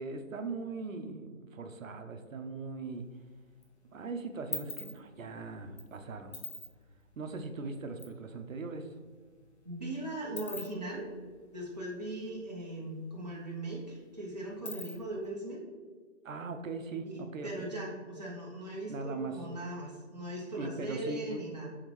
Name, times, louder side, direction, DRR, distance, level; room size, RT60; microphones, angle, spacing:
voice 1, 0.0-3.0 3.9-6.4 7.2-8.9 16.2-17.7 18.9-19.4 20.6-21.4, right 3 dB, 90° right, 6 dB, 0.6 m, -40 dB
sound 1, 2.9-3.6 4.0-8.2 8.5-8.6 8.8-12.6 12.9-13.0 13.3-15.3, left 3 dB, 60° left, 0.8 m, -44 dB
voice 2, 9.6-11.1 11.5-15.6 17.0-21.7, right 1 dB, 35° right, -6 dB, 0.6 m, -39 dB
3.6 x 3.5 x 3.1 m, 1.5 s
figure-of-eight pair, 175°, 38 cm